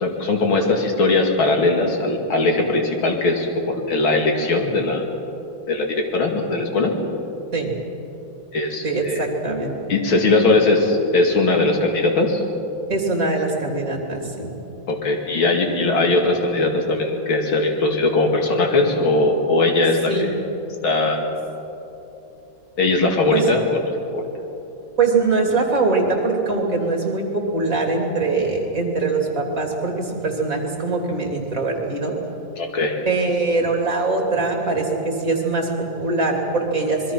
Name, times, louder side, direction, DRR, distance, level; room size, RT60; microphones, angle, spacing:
voice 1, 0.0-5.0 5.7-6.9 8.5-9.2 9.9-12.4 14.9-20.1 20.8-21.2 22.8-23.8 24.1-24.2 32.6-33.0, left 2 dB, 90° left, 2 dB, 3.0 m, -20 dB
voice 2, 8.8-9.8 12.9-14.5 20.1-20.3 23.3-23.4 25.0-32.1 33.0-37.1, right 3 dB, 40° right, 1 dB, 3.2 m, -22 dB
26.5 x 21.5 x 5.8 m, 3.0 s
omnidirectional pair, 2.2 m